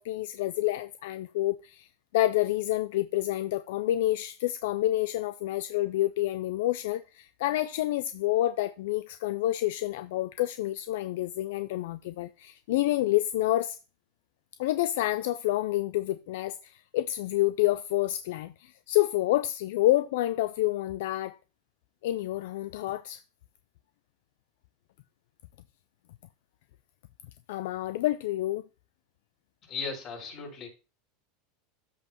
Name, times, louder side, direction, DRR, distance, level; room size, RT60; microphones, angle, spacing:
voice 1, 0.0-1.9 2.1-13.8 14.6-21.4 22.0-23.2 27.5-28.6, left 15 dB, 75° left, 0.3 m, -28 dB
voice 2, 29.6-30.7, left 5 dB, 45° left, 4.4 m, -37 dB
13.0 x 5.4 x 2.9 m
supercardioid pair, 130°, 0 cm